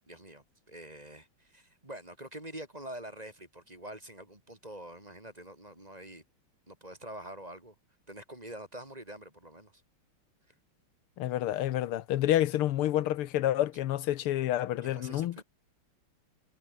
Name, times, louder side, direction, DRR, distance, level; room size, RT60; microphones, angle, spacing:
voice 1, 0.1-6.2 6.7-7.7 8.1-9.8 14.8-15.4, right 1 dB, 15° right, 3.0 m, -46 dB
voice 2, 11.2-15.4, left 13 dB, 80° left, 1.7 m, -29 dB
omnidirectional pair, 2.4 m